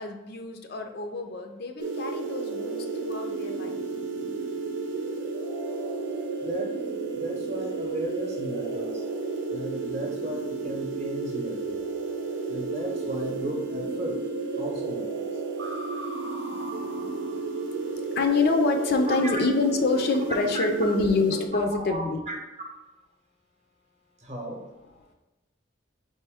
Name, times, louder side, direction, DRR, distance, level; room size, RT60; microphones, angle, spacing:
voice 1, 0.0-3.8 18.1-22.2, left 3 dB, 50° left, 5 dB, 0.4 m, -26 dB
sound 1, 1.8-21.5, right 3 dB, 70° right, 0.6 m, -32 dB
voice 2, 6.4-6.8 7.1-9.0 9.5-11.8 12.5-14.2 14.6-15.3 19.1-19.4 19.9-20.0 20.5-20.7 21.5-22.4 24.2-24.6, right 1 dB, 35° right, 1 dB, 0.7 m, -35 dB
4.3 x 3.1 x 3.4 m, 1.1 s
head